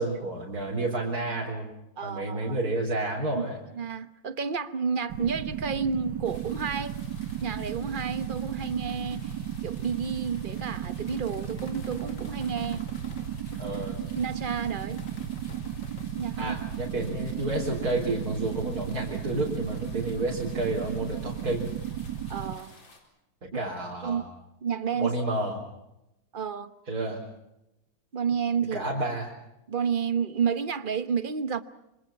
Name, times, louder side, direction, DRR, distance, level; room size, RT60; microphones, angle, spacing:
voice 1, 0.0-1.7 2.0-3.6 13.6-14.0 16.4-21.7 23.4-24.2 24.9-25.5 26.9-27.2 28.7-29.3, right 2 dB, 50° right, -4 dB, 4.5 m, -30 dB
voice 2, 2.0-2.6 3.3-3.5 3.7-7.0 7.4-12.9 14.1-15.0 16.2-16.6 22.3-22.7 24.0-24.2 24.6-25.1 26.3-26.7 28.1-28.8 29.7-31.6, right 6 dB, 35° right, 13 dB, 0.9 m, -30 dB
sound 1, 5.1-22.6, right 10 dB, 65° right, 1.7 m, -35 dB
sound 2, 6.2-23.0, left 3 dB, 85° left, 5.0 m, -54 dB
sound 3, 11.1-13.3 15.0-16.1, left 3 dB, 45° left, 2.6 m, -48 dB
26.0 x 25.5 x 5.8 m, 0.89 s
omnidirectional pair, 2.1 m